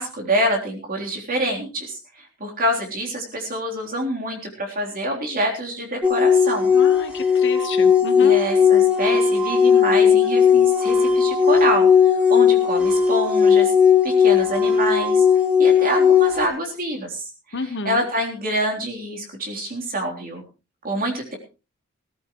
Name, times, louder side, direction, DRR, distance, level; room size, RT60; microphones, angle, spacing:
voice 1, 0.0-6.7 8.2-11.9 12.3-13.7 14.0-15.3 15.6-20.4 20.8-21.4, right 1 dB, 40° right, 1 dB, 3.6 m, -26 dB
sound 1, 6.0-16.5, left 7 dB, 5° right, 3.0 m, -17 dB
voice 2, 6.7-8.3 17.5-18.0, left 4 dB, 55° left, 9 dB, 1.4 m, -31 dB
18.0 x 14.0 x 3.2 m, 0.32 s
head